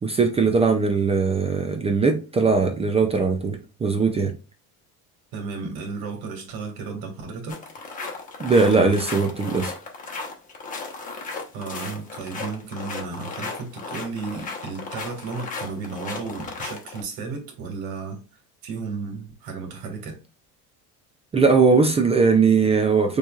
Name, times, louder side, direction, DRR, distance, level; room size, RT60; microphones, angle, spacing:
voice 1, 0.0-4.3 8.4-9.7 21.3-23.2, right 4 dB, 15° right, 0.3 m, -20 dB
voice 2, 5.3-7.6 11.5-18.2 18.6-20.2, right 4 dB, 70° right, 1.9 m, -33 dB
sound 1, 7.5-17.0, left 4 dB, 20° left, 1.0 m, -35 dB
6.9 x 3.2 x 2.4 m
cardioid pair, 155°, 37 cm